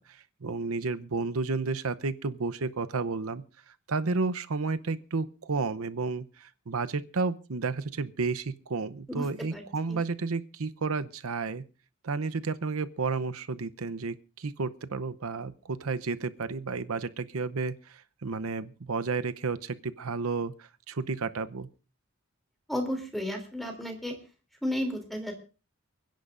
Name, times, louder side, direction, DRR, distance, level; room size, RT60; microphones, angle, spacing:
voice 1, 0.0-11.6 12.0-21.7, right 4 dB, 80° right, 12 dB, 0.7 m, -32 dB
voice 2, 22.7-24.1 24.6-25.3, left 1 dB, ahead, 3 dB, 3.0 m, -32 dB
29.0 x 10.5 x 2.5 m, 0.34 s
head